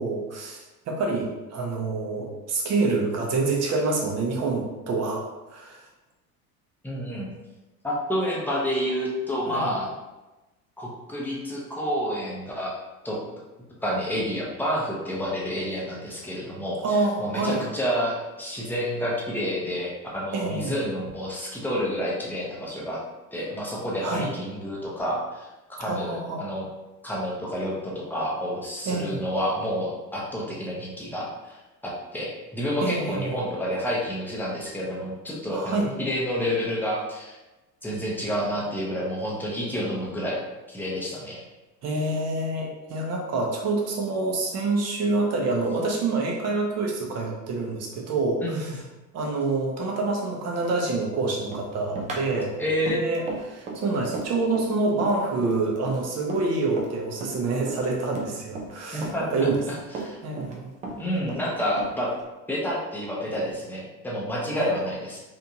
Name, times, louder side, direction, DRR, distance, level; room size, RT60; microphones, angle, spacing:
voice 1, 0.0-5.2 5.5-5.9 9.5-9.7 16.8-17.6 20.3-20.8 24.0-24.3 25.8-26.5 28.8-29.2 32.8-33.4 35.5-35.9 41.8-48.7 49.1-59.6 60.2-60.7 64.5-64.9, right 3 dB, 30° right, 0 dB, 0.8 m, -27 dB
voice 2, 6.8-7.3 7.8-9.9 10.8-12.7 13.0-13.2 13.8-23.0 23.3-25.5 25.8-26.6 27.0-37.4 37.8-40.4 40.7-41.4 48.4-48.8 52.6-53.0 58.9-59.3 59.7-60.2 61.0-62.1 62.5-65.2, equal, 5° left, -5 dB, 0.9 m, -29 dB
Run, 51.5-56.9 57.2-58.8 59.0-60.6 60.8-62.2, right 3 dB, 15° right, 0.4 m, -36 dB
3.3 x 2.9 x 2.8 m, 1.1 s
figure-of-eight pair, 75°, 50 cm